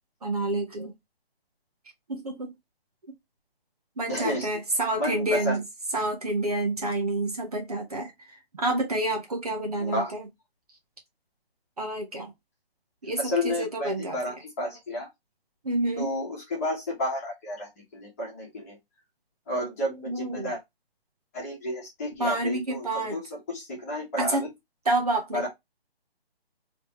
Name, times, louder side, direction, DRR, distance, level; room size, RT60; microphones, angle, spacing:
voice 1, 0.2-0.9 2.1-2.5 4.0-5.6 5.9-10.2 11.8-12.3 13.0-14.2 15.6-16.1 20.1-20.5 22.2-23.2 24.2-24.4 24.8-25.5, right 2 dB, 40° right, 0.9 m, -28 dB
voice 2, 4.1-4.5 4.9-5.6 9.8-10.1 13.2-15.1 16.0-18.8 19.5-20.6 21.3-24.5 25.3-25.5, left 1 dB, 15° left, 1.3 m, -31 dB
3.4 x 3.1 x 3.0 m
hypercardioid pair, 170°, 31 cm